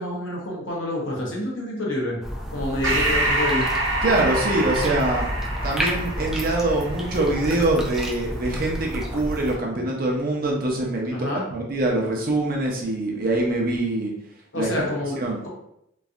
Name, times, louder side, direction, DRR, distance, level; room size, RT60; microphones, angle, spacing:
voice 1, 0.0-2.2 2.5-3.7 11.1-11.5 14.5-15.5, left 1 dB, 85° left, -2 dB, 0.9 m, -28 dB
sound 1, 2.2-9.5, equal, ahead, 0.4 m, -31 dB
Breathing, 2.8-7.7, right 2 dB, 85° right, 0.9 m, -26 dB
voice 2, 4.0-5.3 5.6-11.2 11.5-14.1 14.5-14.7 15.1-15.4, right 2 dB, 50° right, -1 dB, 0.7 m, -24 dB
3.1 x 2.6 x 2.4 m, 0.76 s
head